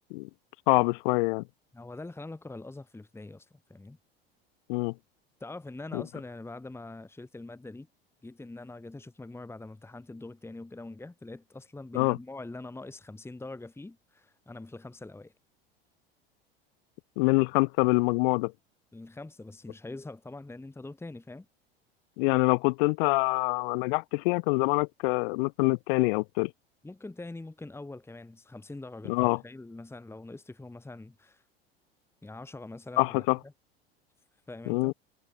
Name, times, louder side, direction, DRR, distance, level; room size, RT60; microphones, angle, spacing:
voice 1, 0.7-1.4 4.7-4.9 5.9-6.0 11.9-12.2 17.2-18.5 22.2-26.5 29.1-29.4 33.0-33.4 34.7-34.9, left 29 dB, 60° left, 0.4 m, -25 dB
voice 2, 1.7-4.0 5.4-7.9 8.2-15.3 18.9-21.4 26.8-31.4 32.2-33.5 34.5-34.9, left 2 dB, 10° left, 1.8 m, -43 dB
hypercardioid pair, 80°, 30 cm